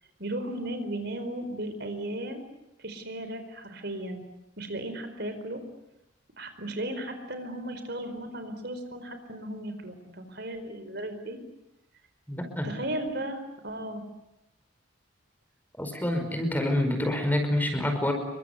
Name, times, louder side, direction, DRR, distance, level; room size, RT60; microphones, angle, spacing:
voice 1, 0.2-2.4 2.8-4.2 4.6-5.6 6.4-11.4 12.6-14.0, right 1 dB, 55° right, 8 dB, 4.6 m, -35 dB
voice 2, 12.3-12.7 15.8-18.1, left 1 dB, 10° left, 6 dB, 5.2 m, -27 dB
29.5 x 23.5 x 8.2 m, 0.92 s
head